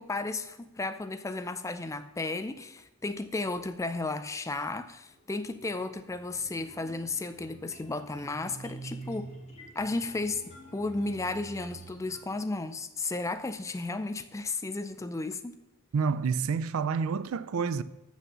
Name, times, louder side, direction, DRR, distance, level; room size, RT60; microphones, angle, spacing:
voice 1, 0.0-9.3 9.8-10.4 10.7-15.6, left 3 dB, 15° left, 0.3 m, -34 dB
sound 1, 5.1-12.2, right 3 dB, 30° left, 2.0 m, -48 dB
voice 2, 15.9-17.8, right 5 dB, 65° right, 0.4 m, -28 dB
6.8 x 6.1 x 6.7 m
head